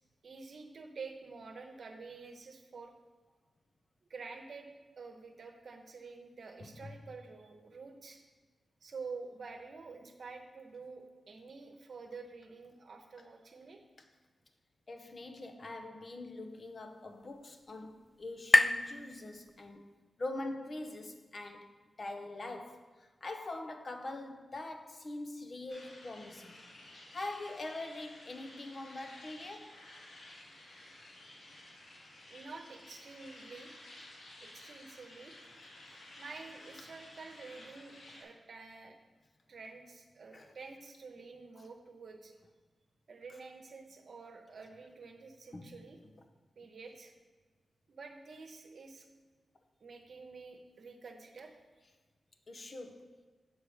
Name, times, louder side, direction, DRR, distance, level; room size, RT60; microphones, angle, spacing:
voice 1, 0.2-2.9 4.1-4.7 5.0-8.2 8.8-13.8 32.3-33.7 34.4-35.4 36.2-39.0 39.5-42.3 43.1-46.0 46.6-47.1 47.9-49.1 49.8-51.6, right 4 dB, 70° right, 0.9 m, -49 dB
voice 2, 6.6-7.0 14.0-14.1 14.9-19.8 20.2-26.6 27.1-29.8 40.3-40.6 41.6-41.7 45.5-45.8 52.5-53.2, left 2 dB, 55° left, 0.8 m, -43 dB
sound 1, 16.2-19.9, left 1 dB, 15° left, 0.4 m, -32 dB
sound 2, 25.7-38.2, left 1 dB, 80° left, 1.5 m, -53 dB
6.9 x 4.6 x 5.0 m
cardioid pair, 45°, 0 cm